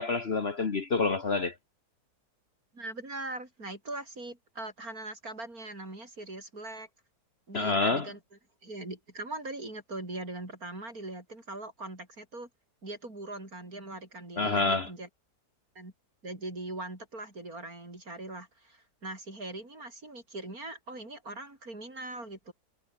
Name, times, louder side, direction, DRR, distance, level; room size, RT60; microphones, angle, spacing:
voice 1, 0.0-1.5 7.5-8.1 14.4-14.9, left 3 dB, 40° left, 1.4 m, -27 dB
voice 2, 2.7-6.9 7.5-8.2 8.6-12.5 12.8-15.1 15.7-15.9 16.2-22.5, right 2 dB, 60° right, 6.8 m, -41 dB
omnidirectional pair, 1.8 m